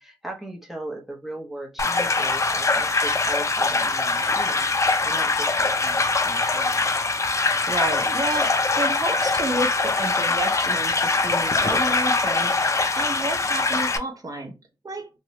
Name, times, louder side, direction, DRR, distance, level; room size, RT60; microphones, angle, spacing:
voice 1, 0.0-6.9, right 1 dB, 5° right, 0.8 m, -37 dB
sound 1, 1.8-14.0, left 3 dB, 35° left, 0.4 m, -23 dB
voice 2, 7.7-14.6 14.8-15.1, right 2 dB, 45° right, 0.7 m, -31 dB
2.8 x 2.2 x 3.0 m
wide cardioid pair, 90°, 9 cm